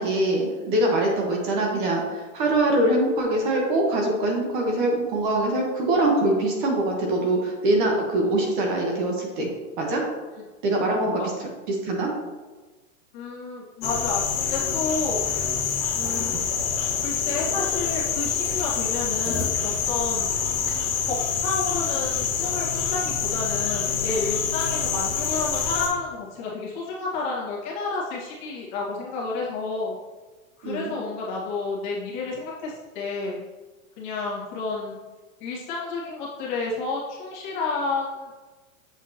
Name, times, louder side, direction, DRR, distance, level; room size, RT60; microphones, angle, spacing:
voice 1, 0.0-9.5 9.8-10.0 10.6-12.1 16.3-16.4 30.6-30.9, right 1 dB, 35° right, 0 dB, 1.3 m, -23 dB
voice 2, 13.1-15.2 15.9-16.4 17.0-20.3 21.0-30.0 30.6-33.4 34.0-35.0 35.4-38.4, left 3 dB, 35° left, -5 dB, 1.7 m, -30 dB
sound 1, 13.8-25.9, left 7 dB, 70° left, 1.8 m, -26 dB
7.5 x 6.0 x 2.9 m, 1.2 s
supercardioid pair, 170°, 41 cm